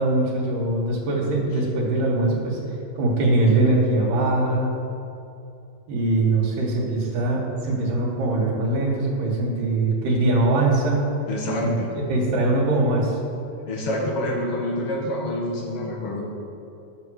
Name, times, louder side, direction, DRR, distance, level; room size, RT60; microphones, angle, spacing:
voice 1, 0.0-2.6 3.0-4.7 5.9-11.0 11.6-13.2, right 2 dB, 90° right, -4 dB, 3.2 m, -22 dB
voice 2, 11.3-11.9 13.7-16.3, left 1 dB, 50° left, -2 dB, 2.2 m, -27 dB
11.0 x 6.3 x 6.3 m, 2.7 s
omnidirectional pair, 3.7 m